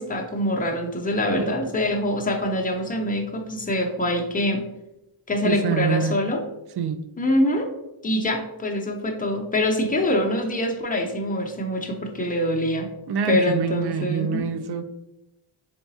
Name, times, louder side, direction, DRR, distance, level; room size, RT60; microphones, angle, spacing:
voice 1, 0.0-4.6 5.3-6.4 7.2-7.7 8.0-12.9 13.3-14.5, left 1 dB, 20° left, 0.7 m, -24 dB
voice 2, 1.4-1.7 5.4-6.2 6.8-7.0 13.1-14.8, right 6 dB, 55° right, 0.5 m, -25 dB
3.9 x 3.5 x 2.8 m
wide cardioid pair, 90°, 47 cm